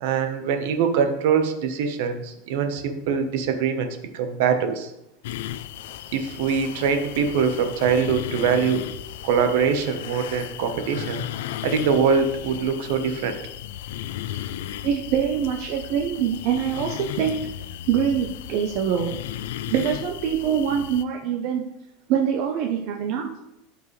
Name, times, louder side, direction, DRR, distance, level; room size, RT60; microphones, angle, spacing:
voice 1, 0.0-4.9 6.1-8.8 9.2-11.2 11.6-13.4, right 6 dB, 60° right, 7 dB, 1.1 m, -23 dB
sound 1, 5.2-21.0, left 12 dB, 75° left, 0.5 m, -35 dB
voice 2, 14.8-17.4 17.9-19.2 19.7-21.6 22.1-23.3, right 8 dB, 40° right, 1 dB, 0.8 m, -24 dB
14.5 x 5.2 x 3.2 m, 0.86 s
supercardioid pair, 175°, 0 cm